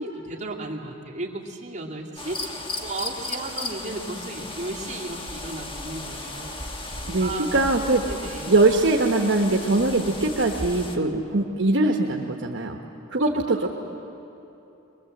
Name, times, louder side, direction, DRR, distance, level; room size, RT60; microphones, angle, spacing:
voice 1, 0.0-7.6 8.1-8.5 13.5-13.6, right 2 dB, 35° right, -2 dB, 2.5 m, -35 dB
sound 1, 2.2-11.0, left 2 dB, 25° left, 1.4 m, -35 dB
voice 2, 7.1-8.1 8.5-12.8 13.1-13.7, right 2 dB, 65° right, 2 dB, 1.1 m, -22 dB
23.0 x 22.0 x 7.8 m, 2.9 s
head